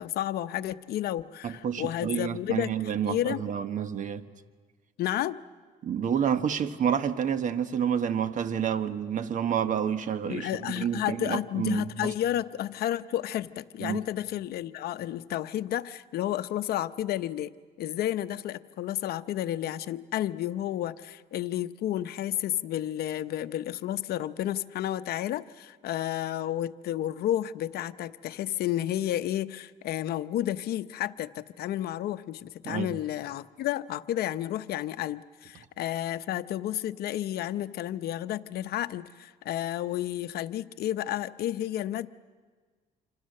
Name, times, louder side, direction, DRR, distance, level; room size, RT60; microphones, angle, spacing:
voice 1, 0.0-2.7 3.0-3.5 5.0-5.4 10.3-17.5 17.8-42.1, left 12 dB, 65° left, 12 dB, 0.8 m, -31 dB
voice 2, 1.4-4.2 5.8-10.5 10.7-12.1 13.8-14.0 32.6-33.0, right 8 dB, 50° right, 10 dB, 1.2 m, -29 dB
28.0 x 26.0 x 6.6 m, 1.5 s
cardioid pair, 110°, 17 cm